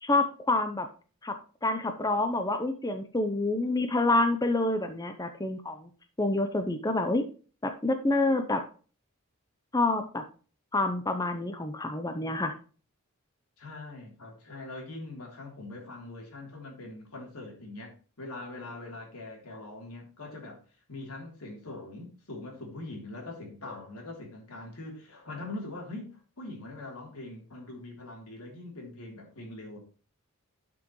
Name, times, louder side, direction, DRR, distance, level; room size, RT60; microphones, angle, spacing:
voice 1, 0.0-0.9 1.2-1.4 1.6-5.9 6.2-7.2 7.6-8.6 9.7-10.2 10.7-12.5, left 2 dB, 15° left, 7 dB, 0.7 m, -27 dB
voice 2, 13.6-17.9 18.2-20.6 20.9-29.8, left 2 dB, 80° left, 0 dB, 3.3 m, -42 dB
11.5 x 6.1 x 3.1 m, 0.37 s
head